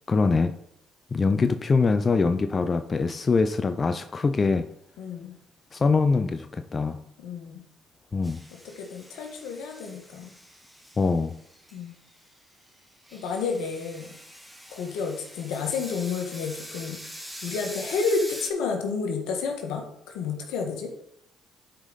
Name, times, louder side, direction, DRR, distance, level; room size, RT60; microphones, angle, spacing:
voice 1, 0.1-0.5 1.1-4.7 5.7-7.0 8.1-8.4 11.0-11.3, left 4 dB, 35° left, 9 dB, 0.5 m, -23 dB
voice 2, 5.0-5.3 7.2-7.6 8.6-10.3 11.7-12.0 13.1-14.1 14.7-17.0 17.4-20.9, left 5 dB, 80° left, 3 dB, 1.6 m, -30 dB
sound 1, 8.2-12.3 12.7-18.5, equal, ahead, 2.1 m, -43 dB
11.5 x 5.0 x 4.1 m, 0.76 s
supercardioid pair, 60°, 0 cm